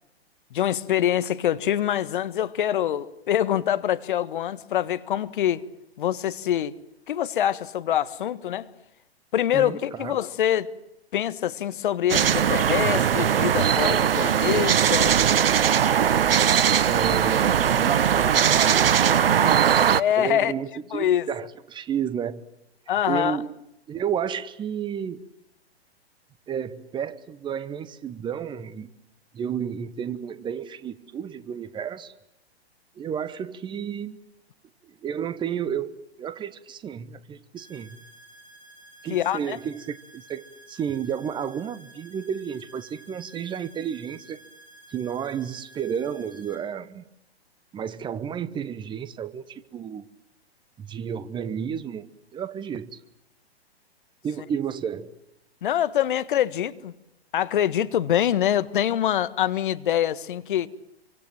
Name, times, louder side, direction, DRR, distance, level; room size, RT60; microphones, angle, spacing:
voice 1, 0.5-5.6 6.0-6.7 7.1-8.7 9.3-10.7 11.1-15.2 19.9-20.5 20.9-21.3 22.9-23.4 39.1-39.6 55.6-56.9 57.3-60.7, left 11 dB, 50° left, 1.6 m, -25 dB
voice 2, 9.5-10.2 16.8-19.8 20.2-22.4 23.1-23.5 23.9-25.2 26.5-28.9 29.3-32.1 33.0-34.2 34.8-38.0 39.0-44.4 44.9-47.0 47.7-50.1 50.8-52.1 52.3-53.0 54.2-55.2, right 8 dB, 15° right, 1.0 m, -32 dB
sound 1, 12.1-20.0, right 8 dB, 60° right, 1.0 m, -20 dB
sound 2, 37.6-46.6, right 1 dB, 15° left, 6.5 m, -51 dB
27.0 x 24.5 x 7.6 m
figure-of-eight pair, 110°, 32 cm